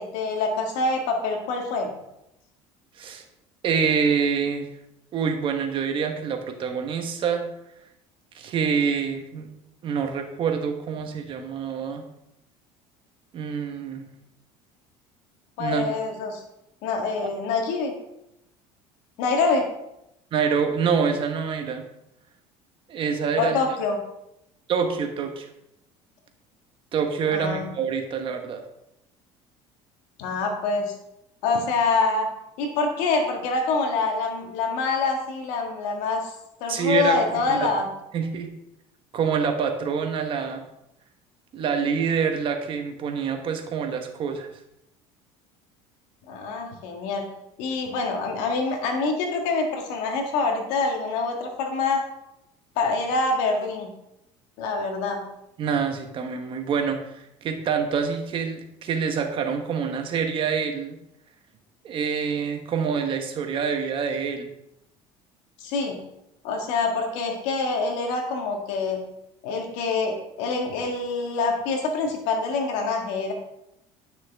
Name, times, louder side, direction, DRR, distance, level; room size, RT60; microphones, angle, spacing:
voice 1, 0.0-1.9 15.6-16.4 16.8-17.9 19.2-19.7 23.4-24.0 27.3-27.7 30.2-30.9 31.4-32.3 32.6-36.3 36.6-37.9 46.3-47.3 47.6-52.0 52.8-53.9 54.6-55.2 65.6-66.0 66.4-69.0 69.4-73.3, left 3 dB, 80° left, 2 dB, 1.8 m, -25 dB
voice 2, 3.6-4.7 5.1-7.4 8.3-9.5 9.8-12.0 13.3-14.1 15.6-15.9 20.3-21.8 22.9-23.6 24.7-25.5 26.9-28.6 36.7-37.6 38.1-38.5 39.1-40.6 41.5-44.5 55.6-61.0 61.8-64.5, right 6 dB, 45° right, 5 dB, 1.3 m, -26 dB
9.8 x 6.2 x 3.5 m, 0.85 s
cardioid pair, 125°, 12 cm